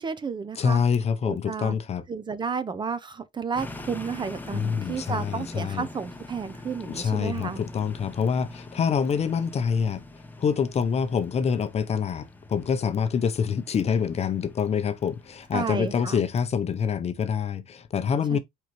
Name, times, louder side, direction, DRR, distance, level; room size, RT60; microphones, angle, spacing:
voice 1, 0.0-0.8 1.2-1.8 2.1-7.6 15.5-16.2 18.3-18.4, right 5 dB, 25° right, 0.6 m, -32 dB
voice 2, 0.6-2.0 4.5-5.9 6.8-10.0 10.4-18.4, left 6 dB, 40° left, 0.7 m, -26 dB
sound 1, 3.5-16.3, left 2 dB, 10° left, 0.8 m, -43 dB
4.6 x 3.8 x 3.0 m
cardioid pair, 110°, 17 cm